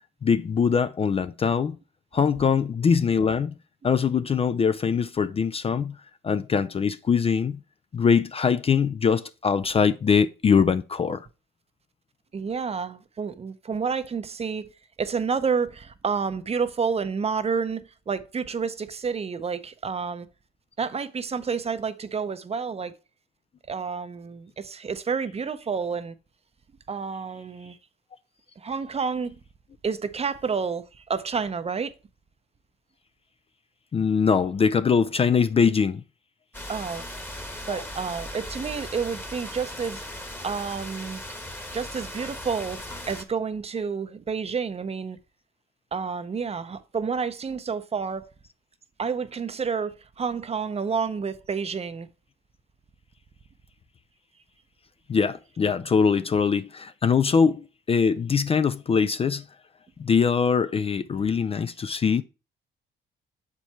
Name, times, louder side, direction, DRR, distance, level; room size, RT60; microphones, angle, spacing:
voice 1, 0.2-1.8 2.1-3.5 3.8-6.0 6.2-7.6 7.9-11.3 33.9-36.0 37.7-37.8 55.1-59.4 60.0-62.2, left 6 dB, 30° left, 0.3 m, -22 dB
voice 2, 12.3-14.7 15.0-20.3 20.8-22.9 23.7-26.1 26.9-27.8 28.6-29.4 29.8-31.9 36.7-37.0 37.7-40.0 40.4-41.2 41.7-42.8 43.1-45.2 45.9-48.3 49.0-52.1, right 5 dB, 30° right, 0.6 m, -29 dB
sound 1, 36.5-43.2, left 1 dB, 10° left, 1.1 m, -38 dB
7.0 x 4.6 x 4.4 m
cardioid pair, 90°, 20 cm